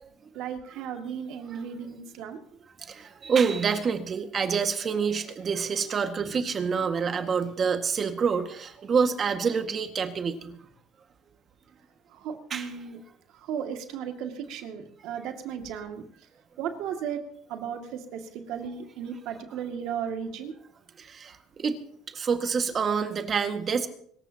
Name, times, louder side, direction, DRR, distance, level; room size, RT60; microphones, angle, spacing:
voice 1, 0.3-2.4 12.1-13.0 13.4-16.1 16.6-17.2 17.5-18.2 18.5-20.5, right 8 dB, 70° right, 4 dB, 2.3 m, -35 dB
voice 2, 2.8-10.6 12.5-12.7 21.0-21.8 22.1-23.9, right 6 dB, 35° right, 6 dB, 1.8 m, -27 dB
25.5 x 14.0 x 2.9 m, 0.65 s
cardioid pair, 115°, 0 cm